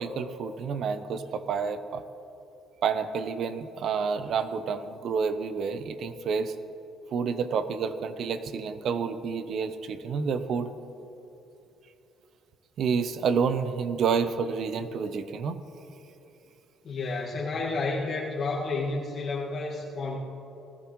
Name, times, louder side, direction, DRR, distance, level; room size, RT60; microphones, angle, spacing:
voice 1, 0.0-2.0 2.8-6.5 7.1-10.7 12.8-15.6, right 6 dB, 60° right, 11 dB, 0.8 m, -29 dB
voice 2, 16.8-20.2, left 3 dB, 50° left, -4 dB, 1.9 m, -31 dB
19.0 x 14.0 x 3.1 m, 2.9 s
cardioid pair, 90°, 0 cm